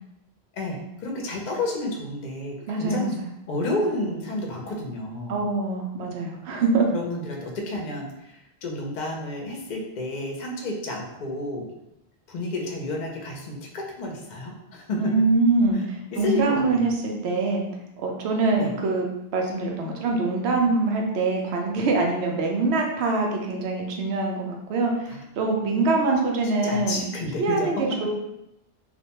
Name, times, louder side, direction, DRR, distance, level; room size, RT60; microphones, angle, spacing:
voice 1, 0.5-3.1 3.5-5.5 6.9-11.7 12.3-15.1 15.7-15.8 16.1-16.8 18.6-18.7 25.1-25.2 26.6-27.7, left 2 dB, 55° left, 0 dB, 0.6 m, -31 dB
voice 2, 2.7-3.3 5.3-6.9 15.0-17.6 18.0-19.1 19.3-27.0 27.4-28.1, right 3 dB, 85° right, 1 dB, 0.8 m, -24 dB
2.4 x 2.1 x 2.8 m, 0.86 s
omnidirectional pair, 1.1 m